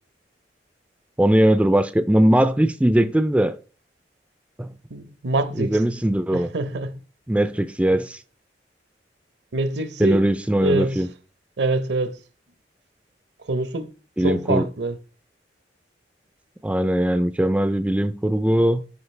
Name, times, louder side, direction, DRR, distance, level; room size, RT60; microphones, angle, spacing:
voice 1, 1.2-3.6 4.6-4.7 5.6-6.5 7.3-8.2 10.0-11.1 14.2-14.7 16.6-18.8, right 1 dB, 5° right, 0.3 m, -20 dB
voice 2, 4.9-5.8 6.3-7.0 9.5-10.3 10.6-11.0 11.6-12.2 13.5-13.9 14.2-15.0, right 2 dB, 75° right, 0.8 m, -25 dB
12.5 x 5.0 x 3.2 m
head